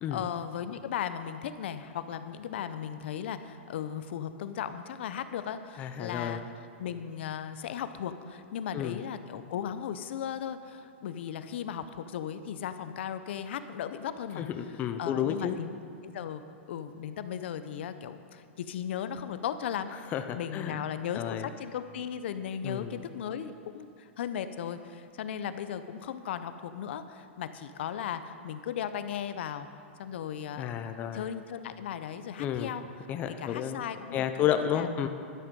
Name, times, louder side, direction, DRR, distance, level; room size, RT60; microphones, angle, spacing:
voice 1, 0.1-6.4 6.8-14.4 15.0-15.8 16.0-16.4 16.7-20.0 20.3-29.7 30.0-30.7 31.1-32.8 33.4-34.9, left 9 dB, 65° left, 11 dB, 0.6 m, -36 dB
voice 2, 5.8-6.4 8.7-9.0 14.4-15.6 20.1-20.8 21.1-21.5 22.6-23.0 30.6-31.3 32.4-32.7 33.1-33.8 34.1-35.1, left 9 dB, 25° left, 7 dB, 0.5 m, -31 dB
12.0 x 9.8 x 5.3 m, 2.4 s
hypercardioid pair, 150°, 7 cm